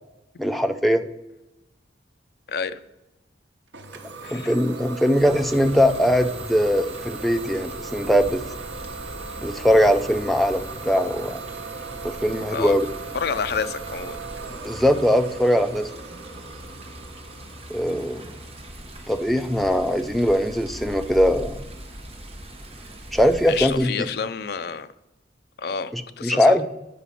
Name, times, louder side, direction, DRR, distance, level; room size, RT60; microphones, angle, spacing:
voice 1, 0.4-1.0 4.3-8.4 9.4-11.4 12.0-12.8 14.6-15.9 17.7-18.2 19.1-21.6 23.1-24.1 25.9-26.7, equal, ahead, 7 dB, 0.4 m, -21 dB
voice 2, 2.5-2.8 4.2-4.5 12.5-12.8 13.1-14.2 23.5-24.9 25.6-26.6, left 6 dB, 60° left, 12 dB, 0.4 m, -29 dB
Idling / Domestic sounds home sounds, 3.7-19.3, right 4 dB, 90° right, 0.9 m, -38 dB
Water, 5.2-23.8, right 1 dB, 35° right, 1.3 m, -40 dB
8.5 x 5.0 x 5.6 m, 0.97 s
head